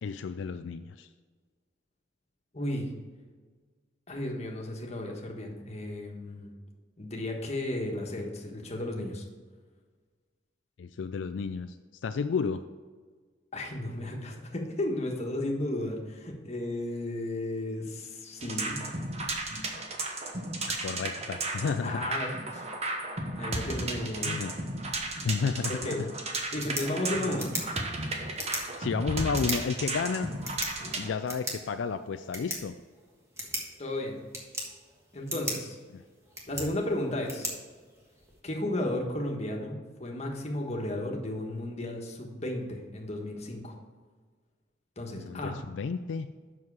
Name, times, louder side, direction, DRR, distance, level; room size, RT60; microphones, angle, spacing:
voice 1, 0.0-1.1 10.8-11.7 12.0-12.6 20.7-22.1 24.2-24.5 25.2-26.1 27.2-27.3 28.8-30.3 31.0-32.7 35.9-36.0 45.2-46.3, left 5 dB, 85° left, 9 dB, 0.4 m, -32 dB
voice 2, 2.5-2.9 4.1-6.6 7.0-9.2 13.5-18.9 21.8-22.7 23.3-24.4 25.7-26.0 26.5-27.5 33.8-34.2 35.1-35.8 36.4-37.5 38.4-43.8 45.0-45.6, left 1 dB, 35° left, 0 dB, 1.4 m, -34 dB
sound 1, 18.4-31.1, right 2 dB, 35° right, 1.0 m, -34 dB
sound 2, 26.4-38.4, right 1 dB, 15° right, 1.5 m, -40 dB
7.5 x 6.2 x 4.7 m, 1.5 s
head